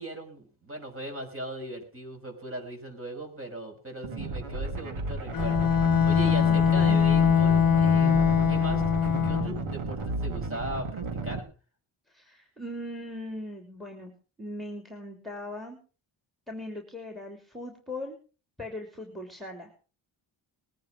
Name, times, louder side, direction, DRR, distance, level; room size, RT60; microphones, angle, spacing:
voice 1, 0.0-8.1 8.5-11.4, right 1 dB, 25° right, 3 dB, 5.9 m, -38 dB
sound 1, 4.0-11.4, right 3 dB, 85° right, 2.3 m, -33 dB
Bowed string instrument, 5.3-9.7, left 7 dB, 45° left, 0.9 m, -22 dB
voice 2, 12.1-14.1 14.4-15.8 16.5-18.2 18.6-19.7, left 1 dB, ahead, 4 dB, 3.1 m, -40 dB
20.5 x 9.3 x 5.1 m, 0.37 s
wide cardioid pair, 110°, 49 cm